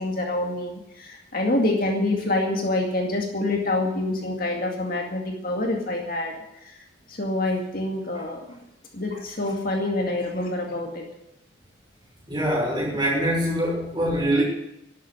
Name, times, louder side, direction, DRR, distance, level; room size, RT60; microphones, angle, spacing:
voice 1, 0.0-8.6 8.9-11.0, left 2 dB, 45° left, 1 dB, 2.2 m, -27 dB
voice 2, 12.3-14.4, right 1 dB, 25° right, -3 dB, 6.2 m, -23 dB
12.0 x 8.3 x 9.6 m, 0.82 s
head